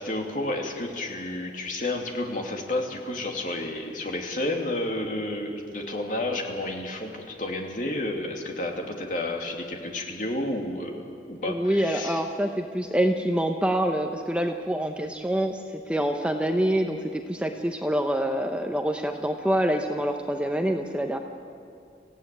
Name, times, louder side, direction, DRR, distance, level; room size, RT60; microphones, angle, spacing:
voice 1, 0.0-12.2, left 1 dB, 45° left, 1 dB, 2.7 m, -31 dB
voice 2, 11.4-21.2, right 1 dB, 5° right, 4 dB, 0.9 m, -26 dB
26.0 x 16.0 x 9.1 m, 2.4 s
head